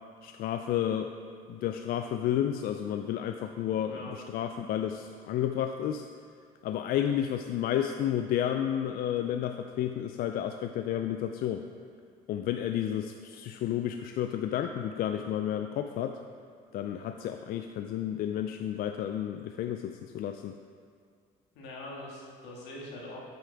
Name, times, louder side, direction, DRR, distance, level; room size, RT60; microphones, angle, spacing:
voice 1, 0.2-1.1 1.5-6.1 6.6-11.6 12.3-16.2 16.7-20.5, left 10 dB, 60° left, 6 dB, 0.4 m, -31 dB
voice 2, 21.5-23.2, left 1 dB, 90° left, -3 dB, 1.9 m, -43 dB
8.4 x 8.0 x 3.4 m, 2.1 s
cardioid pair, 110°, 17 cm